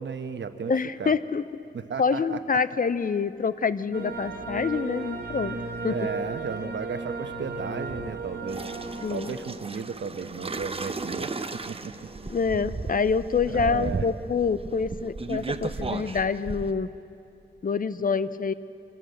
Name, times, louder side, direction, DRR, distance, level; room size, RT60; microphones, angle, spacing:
voice 1, 0.0-0.7 1.0-1.1 1.7-2.4 5.9-8.7 9.1-11.4 11.7-12.1 13.5-14.1, right 6 dB, 80° right, 9 dB, 1.1 m, -34 dB
voice 2, 0.7-1.4 2.0-5.6 5.8-5.9 9.0-9.3 12.3-16.9 17.6-18.5, left 5 dB, 50° left, 14 dB, 0.7 m, -26 dB
sound 1, 3.9-9.1, right 2 dB, 60° right, 2.8 m, -34 dB
sound 2, 8.5-16.7, right 3 dB, 30° right, 0.9 m, -35 dB
25.5 x 17.0 x 7.9 m, 2.7 s
wide cardioid pair, 110°, 19 cm